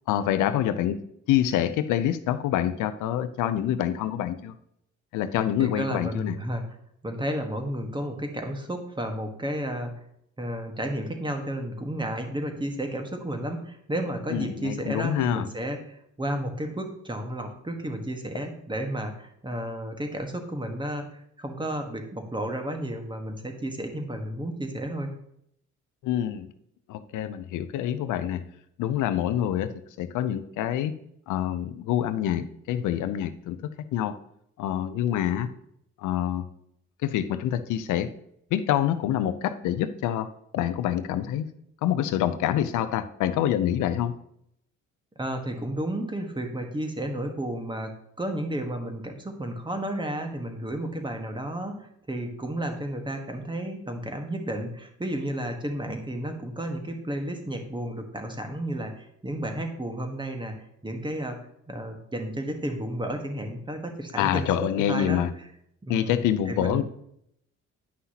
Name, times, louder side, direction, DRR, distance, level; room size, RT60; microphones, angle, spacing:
voice 1, 0.1-1.0 1.3-4.5 5.1-6.4 14.3-15.5 26.0-26.5 26.9-28.4 28.8-29.7 30.0-30.9 31.3-33.6 33.9-34.2 34.6-35.5 36.0-36.5 37.0-38.1 38.5-41.5 41.8-44.1 64.2-65.3 65.9-66.8, left 11 dB, 85° left, 12 dB, 0.6 m, -26 dB
voice 2, 5.6-6.6 7.0-9.9 10.4-21.0 21.4-25.1 35.4-35.5 45.2-60.5 60.8-61.4 61.7-64.5 64.9-65.2 65.8-66.2 66.5-66.8, right 1 dB, 15° right, 4 dB, 1.3 m, -32 dB
9.7 x 5.7 x 2.8 m, 0.73 s
cardioid pair, 90°, 30 cm